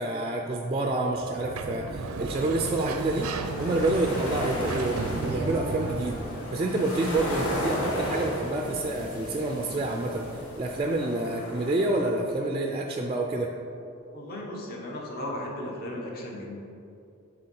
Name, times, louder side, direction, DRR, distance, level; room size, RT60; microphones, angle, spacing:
voice 1, 0.0-6.2 6.5-13.5, right 2 dB, 25° right, 1 dB, 0.3 m, -28 dB
Sliding door, 1.2-6.5, right 3 dB, 85° right, 0.5 m, -34 dB
sound 1, 3.0-8.6, left 1 dB, 25° left, 1.6 m, -45 dB
sound 2, 3.1-12.3, equal, 85° left, 1.1 m, -35 dB
voice 2, 14.1-16.6, left 1 dB, 45° left, -1 dB, 1.0 m, -36 dB
6.8 x 3.5 x 5.3 m, 2.6 s
head